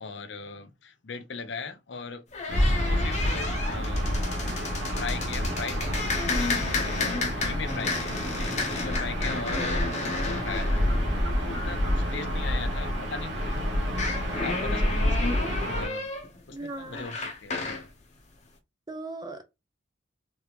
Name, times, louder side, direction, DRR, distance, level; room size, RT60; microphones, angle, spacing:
voice 1, 0.0-2.2 2.7-4.1 4.9-5.9 6.4-7.1 7.4-10.8 11.4-13.7 14.4-16.1 16.5-17.2 17.4-17.8, left 5 dB, 65° left, 0.6 m, -39 dB
sound 1, 2.3-12.7 13.9-17.9, left 3 dB, 35° left, 0.8 m, -33 dB
Gull seagull / Ocean, 2.5-15.9, equal, 65° right, 1.3 m, -28 dB
voice 2, 16.5-17.1 18.9-19.4, right 2 dB, 20° right, 0.6 m, -38 dB
3.4 x 3.4 x 2.9 m
head